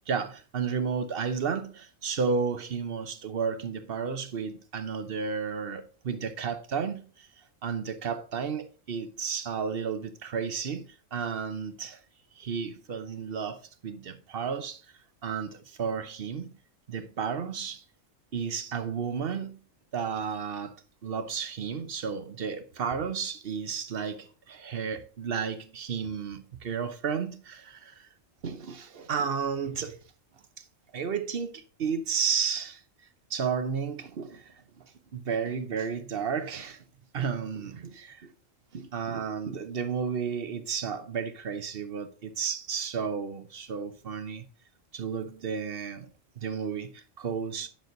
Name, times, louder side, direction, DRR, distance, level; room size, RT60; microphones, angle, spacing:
voice 1, 0.1-7.3 7.6-12.0 12.4-14.8 15.2-16.6 16.9-17.8 18.3-19.6 19.9-20.8 21.0-28.1 28.4-30.0 30.6-30.7 30.9-32.8 33.3-34.8 35.1-36.8 37.1-38.3 38.7-44.5 44.9-46.1 46.4-47.7, right 6 dB, 50° right, 1.0 m, -32 dB
9.2 x 6.2 x 3.9 m
omnidirectional pair, 1.4 m